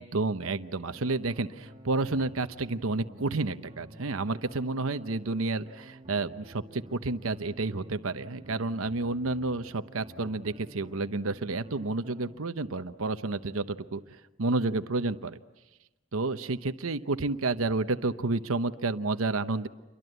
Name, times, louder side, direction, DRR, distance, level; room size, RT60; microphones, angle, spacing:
voice 1, 0.0-15.4 16.1-19.7, right 3 dB, 90° right, 10 dB, 0.9 m, -30 dB
sound 1, 0.9-12.4, right 1 dB, 25° right, 1.5 m, -50 dB
29.5 x 23.5 x 8.0 m, 1.0 s
head